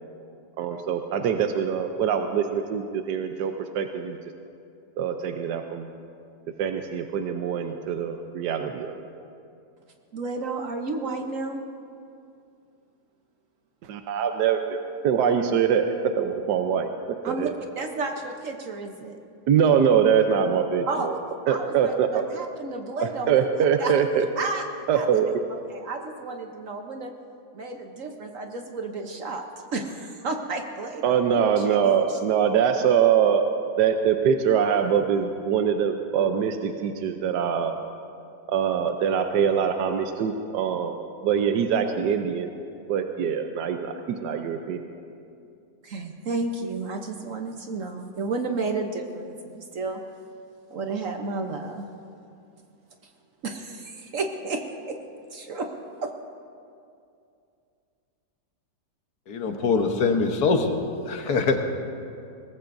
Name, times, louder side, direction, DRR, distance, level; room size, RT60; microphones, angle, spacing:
voice 1, 0.6-4.2 5.0-5.9 6.6-9.0 13.8-14.8 15.0-16.9 17.3-17.5 19.5-21.2 21.5-22.2 23.3-24.3 24.9-25.3 31.0-33.5 33.8-37.7 38.5-41.0 41.2-42.5 42.9-44.8, right 7 dB, 80° right, 5 dB, 1.3 m, -23 dB
voice 2, 10.1-11.6 17.2-17.5 17.8-19.2 20.9-21.1 21.5-21.9 22.3-23.4 23.8-23.9 24.4-24.6 24.9-25.1 25.7-27.1 27.5-29.4 29.7-32.2 45.8-50.0 50.7-51.9 53.4-55.0 55.3-55.7 56.0-56.1, right 3 dB, 55° right, 4 dB, 1.1 m, -32 dB
voice 3, 59.3-60.8 61.1-61.6, left 4 dB, 70° left, 5 dB, 1.6 m, -23 dB
22.0 x 19.0 x 2.6 m, 2.5 s
omnidirectional pair, 1.8 m